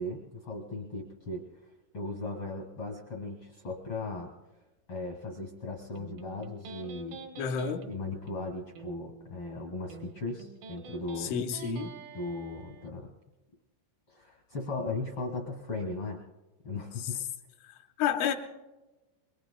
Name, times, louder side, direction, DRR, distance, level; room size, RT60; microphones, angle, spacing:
voice 1, 0.0-1.4 1.9-4.3 4.9-7.2 7.9-11.3 12.1-13.1 14.1-16.2 16.6-17.2, left 2 dB, 60° left, 1.5 m, -37 dB
Electric guitar, 6.0-12.9, right 4 dB, 70° right, 2.2 m, -48 dB
voice 2, 7.4-7.9 11.2-11.9 18.0-18.3, left 7 dB, 80° left, 3.2 m, -29 dB
26.5 x 22.5 x 2.2 m
omnidirectional pair, 5.7 m